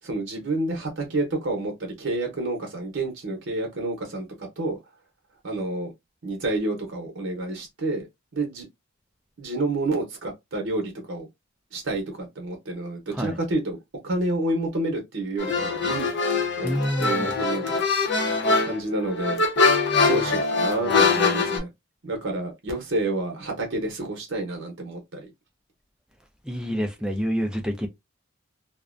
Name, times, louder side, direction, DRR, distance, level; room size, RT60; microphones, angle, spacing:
voice 1, 0.0-4.8 5.4-5.9 6.2-8.1 8.3-8.6 9.4-11.3 11.7-13.8 14.0-16.1 16.6-17.8 18.1-19.4 20.1-21.7 22.0-25.3, right 2 dB, 60° right, 0.8 m, -29 dB
sound 1, 15.4-21.6, left 4 dB, 55° left, 0.7 m, -23 dB
voice 2, 16.6-17.4 26.4-27.9, equal, 5° right, 0.3 m, -27 dB
2.4 x 2.1 x 2.4 m
head